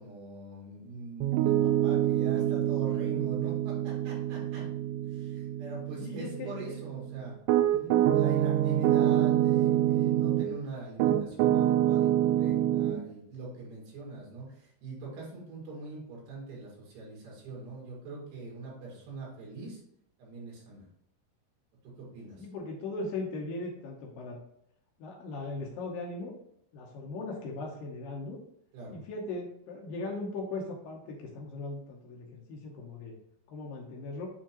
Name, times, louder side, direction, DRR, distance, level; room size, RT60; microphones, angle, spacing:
voice 1, 0.0-4.7 5.0-7.4 8.1-19.8 20.2-20.9 21.8-22.5 28.7-29.0, right 2 dB, 65° right, -3 dB, 4.0 m, -43 dB
Piano, 1.2-10.6 11.0-13.0, right 12 dB, 85° right, 2.9 m, -26 dB
voice 2, 6.0-6.8 7.7-8.1 22.4-24.4 25.0-26.3 26.7-28.4 28.9-33.1 33.5-34.3, left 3 dB, 85° left, 0 dB, 1.9 m, -38 dB
8.0 x 4.6 x 2.9 m, 0.74 s
omnidirectional pair, 5.3 m